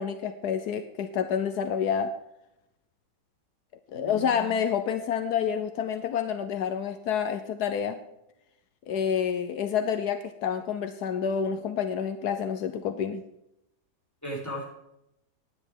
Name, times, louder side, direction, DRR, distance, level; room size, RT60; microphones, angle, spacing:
voice 1, 0.0-2.1 3.9-8.0 8.9-13.2, left 7 dB, 80° left, 8 dB, 1.4 m, -28 dB
voice 2, 3.9-4.4 14.2-14.6, right 1 dB, 10° left, -5 dB, 5.0 m, -36 dB
10.0 x 9.5 x 5.4 m, 0.82 s
omnidirectional pair, 1.7 m